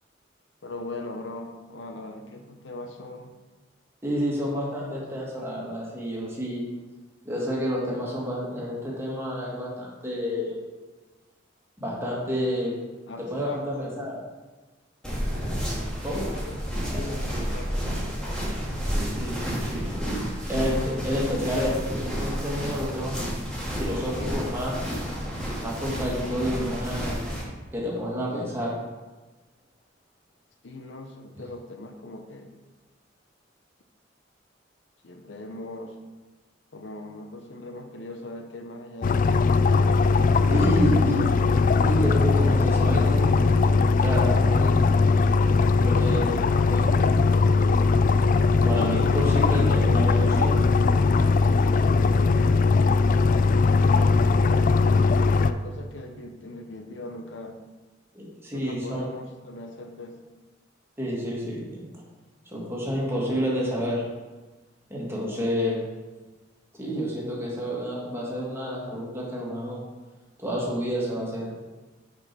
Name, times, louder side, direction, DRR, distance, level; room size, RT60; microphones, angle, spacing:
voice 1, 0.6-3.4 13.1-13.9 16.1-18.0 30.6-32.5 35.0-36.0 36.7-39.2 40.5-41.4 53.5-55.0 55.5-57.6 58.5-60.2, left 2 dB, 75° left, 5 dB, 0.9 m, -40 dB
voice 2, 4.0-6.6 7.3-10.6 11.8-12.7 13.2-14.2 16.0-16.3 19.2-20.0 20.5-23.1 23.8-24.8 25.6-27.2 27.7-28.8 40.5-41.2 41.8-43.6 44.0-44.7 45.8-46.3 46.7-47.1 48.6-50.7 58.1-59.1 61.0-61.9 62.5-64.0 64.9-65.8 66.7-69.8 70.4-71.5, equal, 15° right, -4 dB, 2.1 m, -29 dB
sound 1, 15.0-27.4, equal, 5° left, 2.3 m, -30 dB
sound 2, 39.0-55.5, left 4 dB, 45° left, 0.3 m, -20 dB
6.5 x 5.7 x 6.1 m, 1.2 s
head